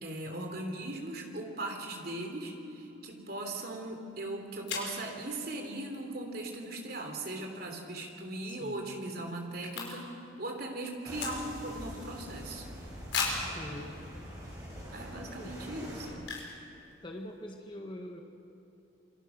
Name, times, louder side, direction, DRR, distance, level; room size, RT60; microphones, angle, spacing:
voice 1, 0.0-10.1 10.4-12.7 14.9-16.3, right 1 dB, 50° right, 3 dB, 3.2 m, -39 dB
sound 1, 4.0-4.1 4.7-5.0 8.0-8.2 8.5-8.6 8.8-10.3 10.5-11.8 12.2-12.3 13.1-13.5 14.2-14.3 14.8-15.0 16.2-16.6 16.9-17.0 17.2-17.5, left 5 dB, 65° left, 5.1 m, -36 dB
voice 2, 8.4-8.8 13.5-13.9 15.4-16.0 17.0-18.2, left 1 dB, 25° left, 2 dB, 1.5 m, -44 dB
sound 2, 11.0-16.1, equal, 15° right, 6.0 m, -44 dB
27.5 x 23.0 x 6.2 m, 2.9 s
head